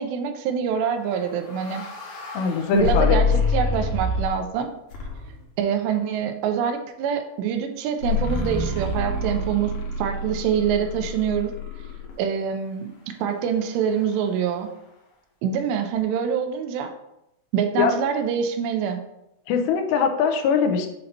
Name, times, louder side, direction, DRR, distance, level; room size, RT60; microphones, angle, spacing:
voice 1, 0.0-1.8 2.7-4.7 5.6-9.7 10.0-11.5 12.2-12.9 13.2-14.7 15.4-16.9 17.5-19.0, right 7 dB, 85° right, 6 dB, 2.8 m, -25 dB
sound 1, 1.1-4.4 4.9-5.4 8.0-12.1, left 3 dB, 65° left, 2.4 m, -26 dB
voice 2, 2.3-3.2 17.8-17.9 19.5-20.9, left 6 dB, 90° left, 5 dB, 2.9 m, -21 dB
7.7 x 2.9 x 5.3 m, 0.85 s
omnidirectional pair, 4.9 m